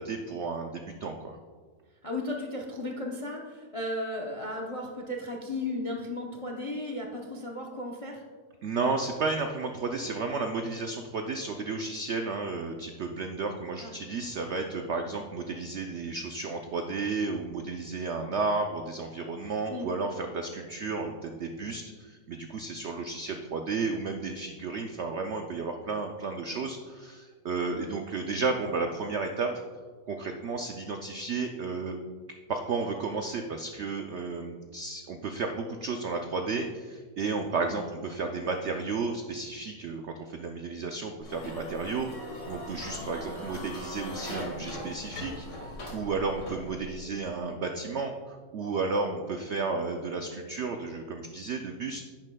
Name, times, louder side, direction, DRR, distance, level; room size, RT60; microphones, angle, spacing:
voice 1, 0.0-1.4 8.6-29.5 30.1-32.0 32.5-42.1 42.5-52.1, right 4 dB, 75° right, 4 dB, 0.6 m, -33 dB
voice 2, 2.0-8.2 13.8-13.9 19.7-19.9 27.7-27.8 37.7-37.9, left 1 dB, 45° left, 1 dB, 0.4 m, -35 dB
sound 1, 41.2-47.0, left 1 dB, 85° left, 2.7 m, -40 dB
10.5 x 9.7 x 2.2 m, 1.5 s
omnidirectional pair, 1.8 m